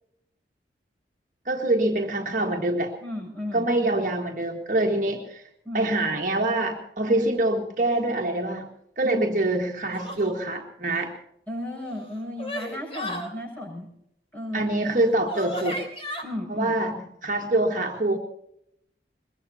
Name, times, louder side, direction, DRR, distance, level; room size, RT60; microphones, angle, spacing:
voice 1, 1.4-2.9 3.5-5.4 5.7-8.7 9.0-11.1 14.5-15.8 16.5-16.9 17.2-18.2, right 2 dB, 45° right, 0 dB, 1.7 m, -25 dB
voice 2, 3.0-4.1 5.6-6.0 9.0-9.4 11.5-13.9 14.3-14.7 16.2-17.0, left 1 dB, 10° left, -1 dB, 7.3 m, -34 dB
sound 1, 9.9-10.4 11.8-13.3 14.8-14.9 15.3-16.2, equal, 35° left, 3.3 m, -34 dB
22.5 x 22.0 x 2.8 m, 0.76 s
head